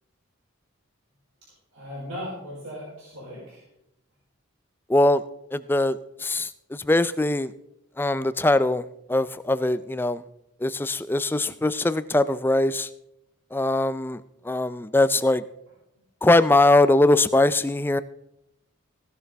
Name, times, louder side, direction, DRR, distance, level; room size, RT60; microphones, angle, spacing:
voice 1, 1.4-3.6, equal, 85° right, -6 dB, 5.4 m, -38 dB
voice 2, 4.9-5.2 5.5-7.5 8.0-10.2 10.6-12.9 13.5-15.4 16.2-18.0, left 2 dB, 10° left, 15 dB, 0.3 m, -21 dB
16.0 x 11.0 x 3.4 m, 0.81 s
head